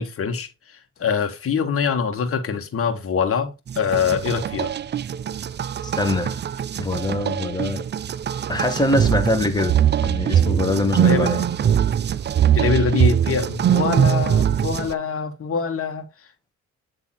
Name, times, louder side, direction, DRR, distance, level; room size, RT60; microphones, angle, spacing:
voice 1, 0.0-4.7 11.0-11.4 12.5-16.1, left 6 dB, 50° left, 1.7 m, -24 dB
sound 1, 3.7-14.9, right 9 dB, 35° right, 0.4 m, -22 dB
voice 2, 5.8-6.4 6.8-7.8 8.5-11.4, left 2 dB, 15° left, 1.5 m, -23 dB
8.9 x 3.4 x 4.2 m
cardioid pair, 90°, 30 cm